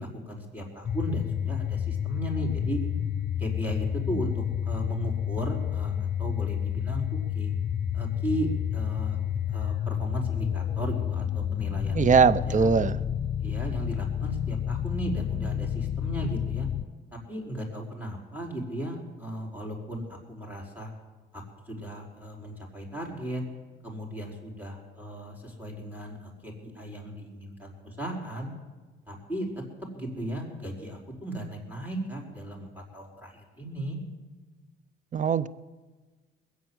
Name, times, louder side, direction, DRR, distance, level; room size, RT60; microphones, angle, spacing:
voice 1, 0.0-2.8 3.4-4.3 4.6-7.0 7.3-7.5 7.9-9.2 9.5-12.7 13.4-16.7 17.1-20.9 21.7-23.4 23.8-28.5 29.1-29.5 29.9-34.0, right 1 dB, 10° right, 0 dB, 4.7 m, -36 dB
sound 1, 0.8-16.8, left 9 dB, 50° left, 0.6 m, -30 dB
voice 2, 11.9-13.0 35.1-35.5, right 6 dB, 40° right, 18 dB, 0.6 m, -21 dB
20.5 x 8.4 x 7.9 m, 1.3 s
cardioid pair, 90°, 20 cm